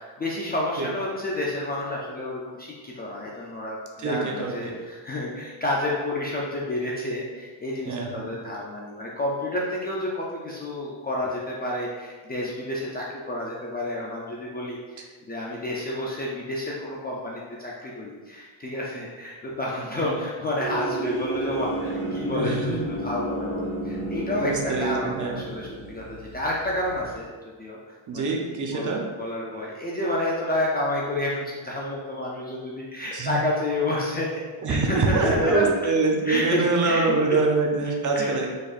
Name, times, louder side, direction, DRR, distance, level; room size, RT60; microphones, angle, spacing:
voice 1, 0.0-27.3 27.6-34.3 34.7-35.9 36.2-37.4 38.1-38.3, left 1 dB, 20° left, -4 dB, 0.4 m, -30 dB
voice 2, 4.0-4.7 7.9-8.3 20.0-20.2 22.3-22.8 24.4-25.4 28.1-29.0 33.1-33.4 34.6-38.5, right 3 dB, 40° right, 0 dB, 0.6 m, -25 dB
sound 1, 20.6-27.2, right 2 dB, 60° right, 1.1 m, -32 dB
4.9 x 4.2 x 2.4 m, 1.5 s
cardioid pair, 155°, 48 cm